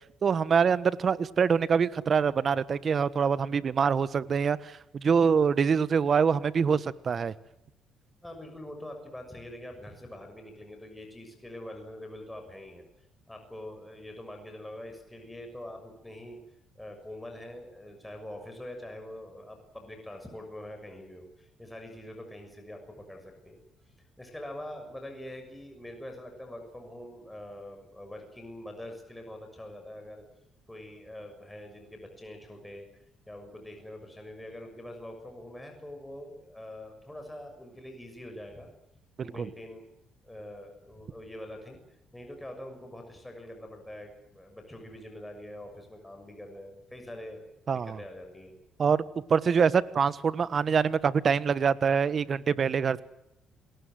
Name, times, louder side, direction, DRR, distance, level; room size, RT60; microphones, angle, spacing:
voice 1, 0.2-7.3 39.2-39.5 47.7-48.0 48.8-49.0 49.3-53.0, right 6 dB, 45° right, 16 dB, 1.4 m, -25 dB
voice 2, 8.2-12.8 13.3-16.4 16.7-23.6 24.2-30.2 30.7-32.9 33.3-38.7 39.2-39.9 40.2-41.8 42.1-47.4 47.7-48.6, left 1 dB, 10° left, 4 dB, 6.7 m, -44 dB
28.0 x 20.0 x 7.8 m, 0.80 s
cardioid pair, 95°, 0 cm